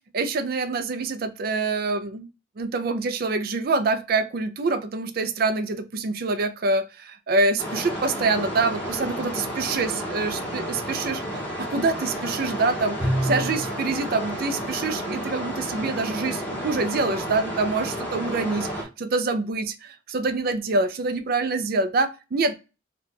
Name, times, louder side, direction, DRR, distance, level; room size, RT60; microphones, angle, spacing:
voice 1, 0.1-2.3 2.6-22.5, right 3 dB, 55° right, 0.4 m, -26 dB
sound 1, 7.6-18.8, equal, 10° left, 1.0 m, -32 dB
Bowed string instrument, 13.0-13.9, right 1 dB, 25° right, 0.8 m, -26 dB
2.8 x 2.3 x 3.6 m
head